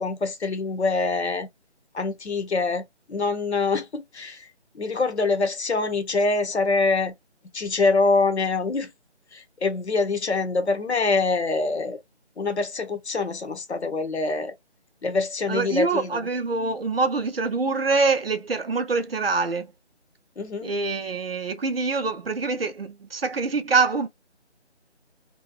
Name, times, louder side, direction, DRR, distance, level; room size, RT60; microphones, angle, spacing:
voice 1, 0.0-1.5 1.9-7.1 7.5-8.9 9.3-12.0 12.4-14.5 15.0-16.3 20.4-20.7, left 3 dB, 70° left, 1.0 m, -25 dB
voice 2, 15.5-19.7 20.6-24.1, right 4 dB, 55° right, 0.6 m, -25 dB
2.8 x 2.2 x 2.3 m
figure-of-eight pair, 170°, 35 cm